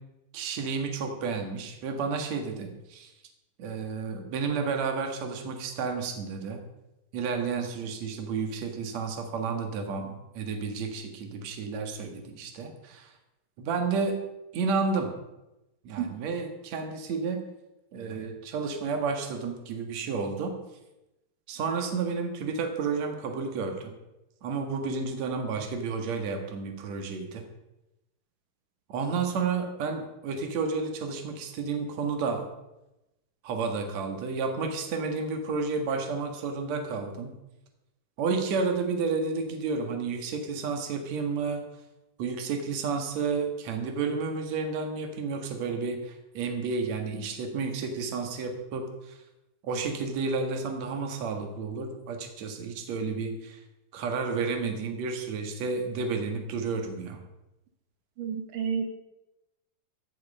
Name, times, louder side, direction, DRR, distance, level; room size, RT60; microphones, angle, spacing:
voice 1, 0.3-3.1 3.6-6.6 7.1-13.1 13.6-14.2 14.5-15.1 15.8-17.4 17.9-20.5 21.5-23.9 24.4-27.4 28.9-32.5 33.4-37.3 38.2-41.6 42.2-49.2 49.6-53.6 53.9-57.2, right 4 dB, 60° right, 4 dB, 2.8 m, -31 dB
voice 2, 58.2-58.9, right 7 dB, 80° right, 4 dB, 3.0 m, -30 dB
16.0 x 9.3 x 5.4 m, 0.94 s
omnidirectional pair, 3.7 m